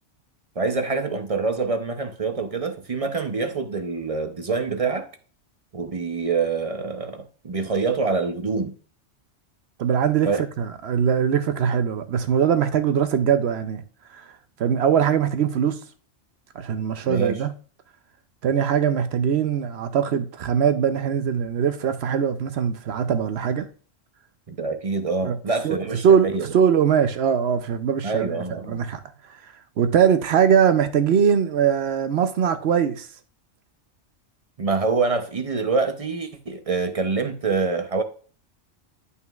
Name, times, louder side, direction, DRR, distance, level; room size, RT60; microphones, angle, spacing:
voice 1, 0.6-5.1 5.7-8.8 10.2-10.4 17.0-17.4 24.5-26.5 28.0-28.8 34.6-38.0, right 4 dB, 40° right, 0.6 m, -26 dB
voice 2, 9.8-10.3 10.6-13.8 14.1-14.2 14.6-15.8 16.6-17.5 18.4-23.7 25.2-25.4 25.6-25.8 26.0-29.0 29.8-33.1, right 8 dB, 65° right, 0.8 m, -21 dB
11.0 x 5.5 x 2.3 m
omnidirectional pair, 1.2 m